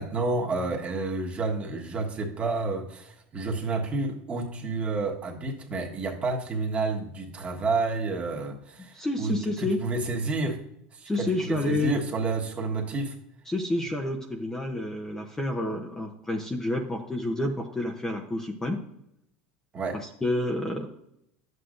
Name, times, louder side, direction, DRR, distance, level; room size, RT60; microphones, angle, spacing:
voice 1, 0.0-10.6 10.9-13.1 19.7-20.0, right 3 dB, 25° right, 1 dB, 1.4 m, -30 dB
voice 2, 8.9-9.8 11.1-12.0 13.5-18.8 19.9-20.9, left 1 dB, 10° left, 2 dB, 0.7 m, -29 dB
11.0 x 7.9 x 2.6 m, 0.78 s
supercardioid pair, 135°, 5 cm